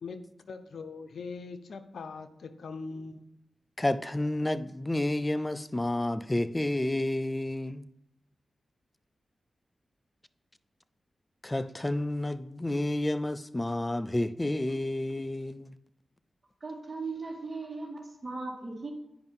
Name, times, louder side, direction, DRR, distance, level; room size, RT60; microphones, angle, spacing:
voice 1, 0.0-3.2, left 4 dB, 80° left, 0.7 m, -41 dB
voice 2, 3.8-7.9 11.4-15.7, left 1 dB, 25° left, 0.5 m, -30 dB
voice 3, 16.6-18.9, right 3 dB, 40° right, 2.0 m, -38 dB
9.2 x 5.4 x 5.5 m
cardioid pair, 50°, 0 cm